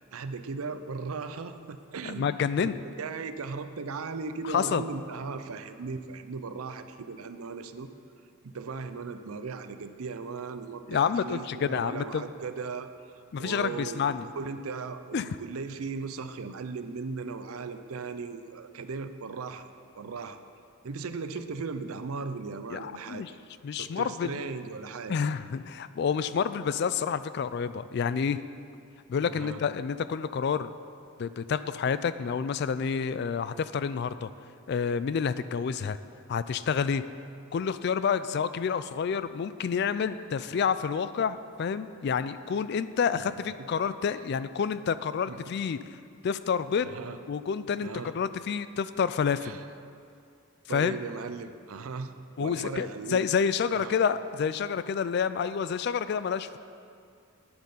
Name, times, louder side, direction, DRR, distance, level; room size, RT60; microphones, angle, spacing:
voice 1, 0.1-2.3 2.6-2.7 3.0-7.9 8.4-12.9 13.4-19.7 20.0-20.4 20.8-23.4 23.8-25.2 29.3-29.6 43.1-43.7 45.3-45.4 46.8-47.2 47.8-48.1 49.4-49.6 50.7-52.1 52.4-53.2 53.7-54.0, right 4 dB, 85° right, 10 dB, 0.6 m, -37 dB
voice 2, 2.2-2.8 4.5-4.8 10.9-12.2 13.3-14.3 15.1-15.3 22.7-23.3 23.6-24.4 25.1-28.4 29.1-30.7 31.2-34.3 34.7-36.0 36.3-37.0 37.5-45.8 46.2-46.9 47.3-49.6 50.7-51.0 52.4-56.6, left 6 dB, 50° left, 14 dB, 0.3 m, -29 dB
9.7 x 7.5 x 5.4 m, 2.4 s
head